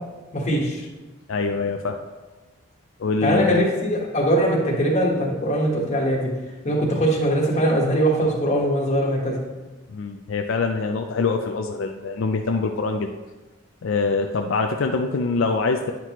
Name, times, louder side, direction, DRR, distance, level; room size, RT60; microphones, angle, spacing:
voice 1, 0.3-0.8 3.2-6.3 6.6-9.4, right 1 dB, 35° left, -2 dB, 1.3 m, -21 dB
voice 2, 1.3-2.0 3.0-3.6 9.9-13.1 13.8-15.9, left 4 dB, 70° left, 4 dB, 0.4 m, -24 dB
9.4 x 5.8 x 3.0 m, 1.2 s
head